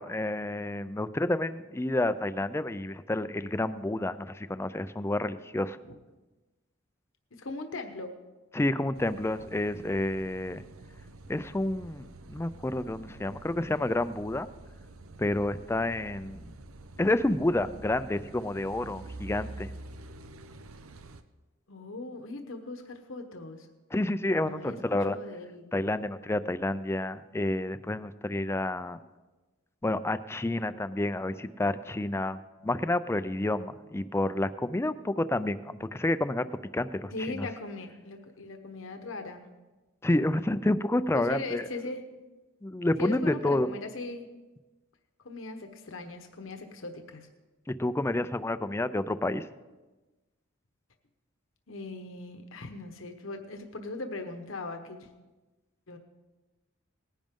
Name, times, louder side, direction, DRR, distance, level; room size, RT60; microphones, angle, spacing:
voice 1, 0.0-5.8 8.5-10.6 11.3-14.5 15.2-16.4 17.0-19.7 23.9-25.2 25.7-29.0 29.8-32.4 32.6-36.5 36.7-37.5 40.0-41.6 42.6-43.7 47.8-49.4, left 1 dB, 10° left, 13 dB, 0.4 m, -29 dB
voice 2, 7.4-8.2 21.7-23.7 24.4-24.8 25.1-25.7 37.1-39.5 41.1-42.0 43.0-44.3 45.2-47.3 51.7-55.1 55.9-56.0, left 2 dB, 70° left, 5 dB, 1.1 m, -39 dB
Car passing by / Idling / Accelerating revving vroom, 8.9-21.2, right 2 dB, 85° right, 0.7 m, -47 dB
18.5 x 10.5 x 3.7 m, 1.2 s
head